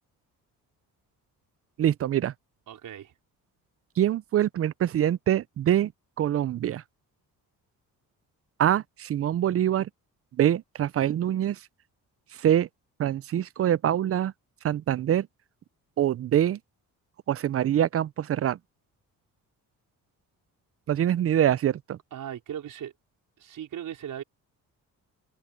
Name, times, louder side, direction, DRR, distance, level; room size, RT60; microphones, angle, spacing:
voice 1, 1.8-2.3 4.0-5.9 6.2-6.8 8.6-9.9 10.4-11.6 12.4-12.7 13.0-14.3 14.6-15.3 16.0-16.6 17.3-18.6 20.9-22.0, right 11 dB, 40° right, 0.4 m, -24 dB
voice 2, 2.7-3.1 22.1-22.9 23.4-24.2, right 10 dB, 65° right, 4.8 m, -38 dB
cardioid pair, 120°, 35 cm